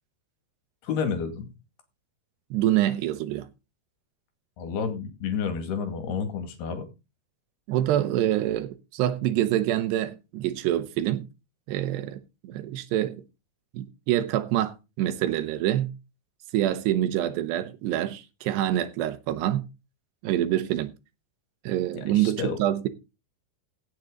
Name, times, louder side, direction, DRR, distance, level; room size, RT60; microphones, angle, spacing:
voice 1, 0.8-1.5 4.6-6.9 21.9-22.6, left 6 dB, 70° left, 4.0 m, -30 dB
voice 2, 2.5-3.5 7.7-11.3 11.7-13.2 13.7-15.9 16.5-19.7 20.2-20.9 21.6-22.9, right 12 dB, 80° right, 3.1 m, -26 dB
16.5 x 7.9 x 3.9 m
omnidirectional pair, 4.8 m